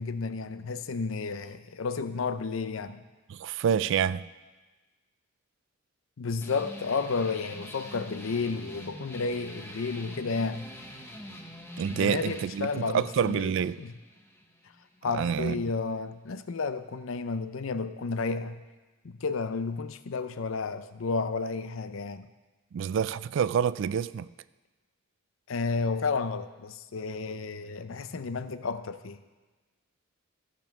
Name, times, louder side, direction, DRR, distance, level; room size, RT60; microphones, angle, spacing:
voice 1, 0.0-3.0 6.2-10.7 11.9-13.5 13.8-13.9 15.0-18.6 19.0-22.3 25.5-29.2, left 4 dB, 75° left, 12 dB, 0.6 m, -32 dB
voice 2, 3.3-4.2 11.8-13.8 15.0-15.6 22.7-24.3, right 7 dB, 65° right, 17 dB, 0.3 m, -27 dB
sound 1, 6.4-15.4, equal, 10° left, 0.9 m, -45 dB
14.5 x 5.3 x 6.0 m, 1.2 s
head